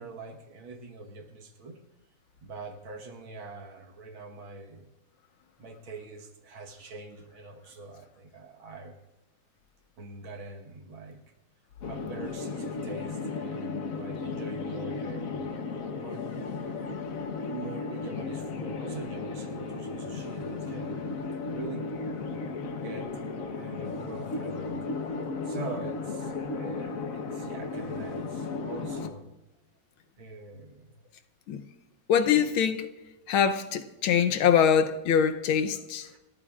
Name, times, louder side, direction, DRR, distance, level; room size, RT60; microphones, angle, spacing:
voice 1, 0.0-1.8 2.4-4.9 5.6-8.9 10.0-11.2 11.8-15.4 15.9-16.3 17.5-21.0 21.3-21.9 22.3-22.5 22.8-23.1 23.5-24.8 25.4-29.3 30.2-30.9 32.2-32.4 36.0-36.2, right 3 dB, 80° right, 2.2 m, -43 dB
sound 1, 11.8-29.1, left 4 dB, 50° left, 1.2 m, -35 dB
voice 2, 32.1-32.9 33.3-36.1, left 8 dB, 85° left, 1.7 m, -23 dB
29.5 x 13.5 x 2.4 m
omnidirectional pair, 2.2 m